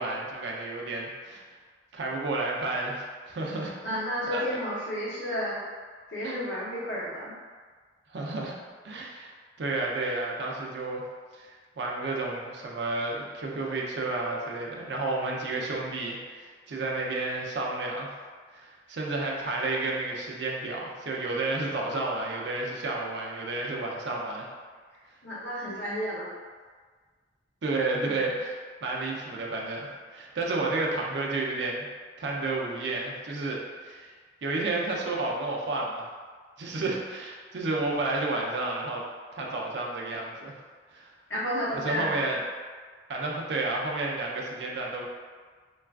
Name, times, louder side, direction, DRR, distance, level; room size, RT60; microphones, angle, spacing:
voice 1, 0.0-1.4 1.9-3.7 4.3-4.4 6.2-6.4 8.1-8.5 8.8-11.0 11.3-18.1 18.5-24.5 27.6-31.9 32.2-34.1 34.4-36.1 36.6-39.0 39.3-40.6 40.9-41.1 41.7-42.4 43.1-45.1, right 2 dB, 70° right, -2 dB, 0.5 m, -31 dB
voice 2, 3.8-5.6 6.1-7.3 25.2-26.3 41.3-42.2, equal, 85° left, -7 dB, 0.8 m, -31 dB
3.1 x 2.3 x 2.3 m, 1.5 s
head